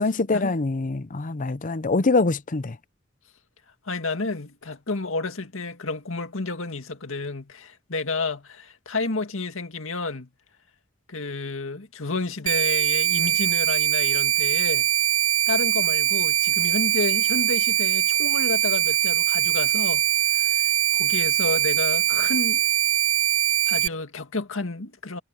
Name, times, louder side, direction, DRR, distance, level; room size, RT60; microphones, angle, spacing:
voice 1, 0.0-2.8, left 3 dB, 40° left, 0.7 m, -24 dB
voice 2, 3.9-10.3 11.1-14.9 15.5-20.0 20.3-22.7 23.7-25.2, left 3 dB, 75° left, 2.0 m, -30 dB
sound 1, 12.5-23.9, right 13 dB, 75° right, 0.4 m, -22 dB
head